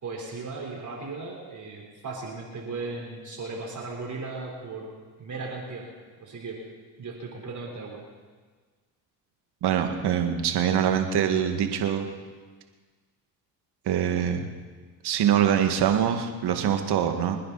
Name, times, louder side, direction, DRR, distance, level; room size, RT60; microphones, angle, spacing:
voice 1, 0.0-4.9 5.2-5.9 6.2-6.6 7.0-8.0, right 3 dB, 40° right, -2 dB, 4.2 m, -36 dB
voice 2, 9.6-12.1 13.9-14.5 15.0-17.4, right 9 dB, 55° right, 5 dB, 2.1 m, -24 dB
27.5 x 10.0 x 4.2 m, 1.5 s
supercardioid pair, 80°, 46 cm